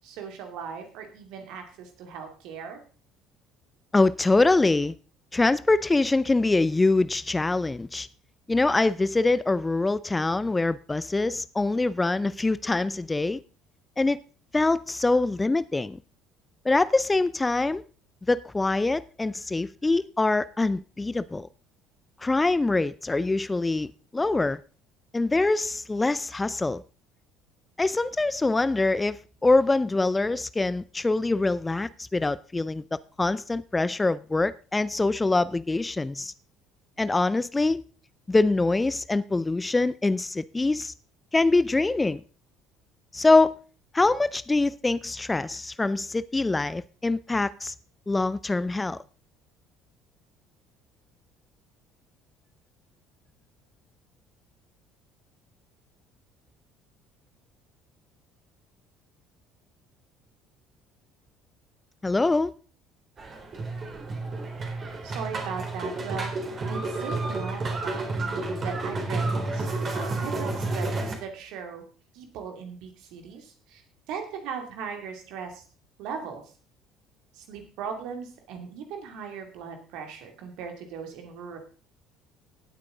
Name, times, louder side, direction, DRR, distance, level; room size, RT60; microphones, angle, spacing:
voice 1, 0.0-2.8 65.0-71.9 72.1-73.8 74.1-75.6 76.0-76.4 77.3-81.6, right 6 dB, 60° right, 2.5 m, -38 dB
voice 2, 3.9-4.9 5.3-8.1 8.5-13.4 14.0-14.2 14.5-16.0 16.6-17.8 18.3-21.5 22.2-24.6 25.1-26.8 27.8-36.3 37.0-37.8 38.3-40.9 41.3-42.2 43.1-43.5 43.9-47.7 48.1-49.0 62.0-62.5, left 3 dB, 15° left, 0.4 m, -24 dB
sound 1, 63.2-71.1, right 2 dB, 35° right, 3.7 m, -30 dB
17.5 x 8.4 x 3.7 m
figure-of-eight pair, 55°, 0 cm